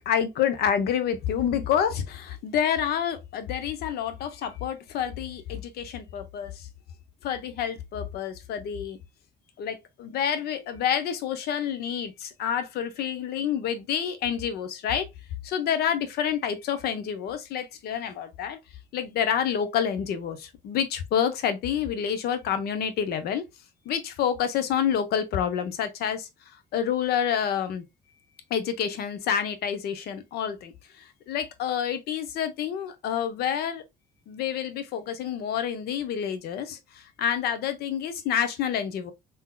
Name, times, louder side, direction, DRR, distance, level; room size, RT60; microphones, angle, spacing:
voice 1, 0.0-6.7 7.2-9.0 9.6-15.1 15.4-18.6 18.9-23.4 23.9-27.8 28.5-33.8 34.3-39.1, left 8 dB, 70° left, 0.7 m, -28 dB
3.7 x 2.8 x 2.2 m
cardioid pair, 110°, 17 cm